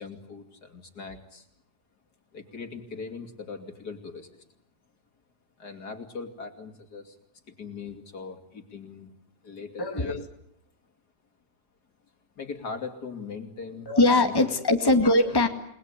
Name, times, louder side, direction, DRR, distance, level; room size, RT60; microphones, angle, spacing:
voice 1, 0.0-1.5 2.3-4.4 5.6-7.2 7.5-9.1 9.4-10.2 12.4-14.3, left 4 dB, 65° left, 5 dB, 3.3 m, -40 dB
voice 2, 9.8-10.3 13.9-15.5, left 2 dB, 15° left, 4 dB, 2.1 m, -21 dB
29.5 x 20.5 x 10.0 m, 0.72 s
omnidirectional pair, 1.8 m